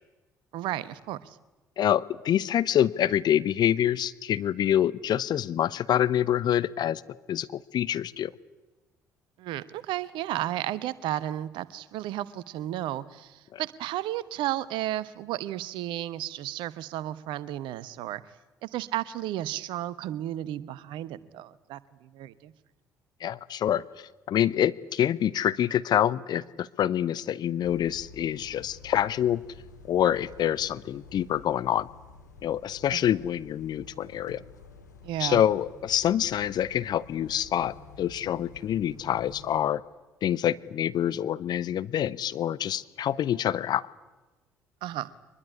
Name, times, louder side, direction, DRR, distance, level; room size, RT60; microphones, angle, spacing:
voice 1, 0.5-1.4 9.4-18.2 18.6-22.5 32.9-33.1 35.0-35.4 44.8-45.1, right 13 dB, 60° right, 18 dB, 1.1 m, -33 dB
voice 2, 1.8-7.0 7.3-8.3 13.5-13.6 23.2-29.4 29.9-31.9 32.4-34.4 35.2-39.8 40.2-43.8, left 10 dB, 50° left, 17 dB, 0.8 m, -26 dB
sound 1, 27.6-39.6, left 4 dB, 80° left, 2.0 m, -50 dB
23.5 x 21.0 x 9.8 m, 1.1 s
figure-of-eight pair, 50°, 9 cm